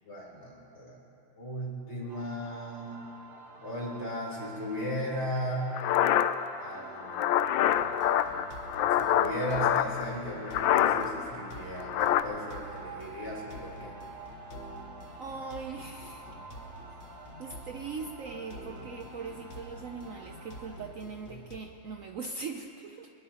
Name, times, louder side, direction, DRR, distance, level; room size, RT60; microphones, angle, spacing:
voice 1, 0.0-1.0 1.4-3.0 3.6-5.7 6.6-7.8 8.9-13.9, equal, 30° left, -5 dB, 3.9 m, -36 dB
sound 1, 2.1-20.8, right 3 dB, 50° right, 1.9 m, -49 dB
sound 2, 5.8-10.0 10.5-11.2 11.5-12.2, left 11 dB, 75° left, 1.2 m, -26 dB
sound 3, 7.6-21.6, left 1 dB, 55° left, 1.9 m, -48 dB
voice 2, 15.1-16.3 16.9-17.1 17.4-23.1, right 4 dB, 80° right, 3 dB, 0.7 m, -40 dB
22.0 x 21.0 x 2.9 m, 2.8 s
omnidirectional pair, 2.3 m